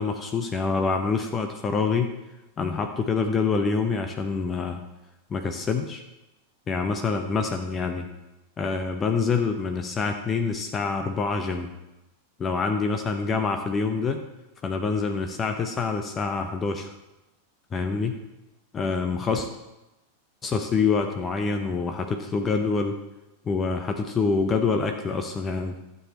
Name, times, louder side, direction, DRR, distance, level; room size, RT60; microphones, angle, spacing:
voice 1, 0.0-2.1 2.6-4.8 5.3-6.0 6.7-8.1 8.6-11.7 12.4-14.2 14.6-16.9 17.7-18.2 18.7-19.5 20.4-23.0 23.5-25.7, left 4 dB, 20° left, 5 dB, 0.8 m, -26 dB
12.5 x 7.2 x 4.4 m, 0.99 s
figure-of-eight pair, 90°, 0 cm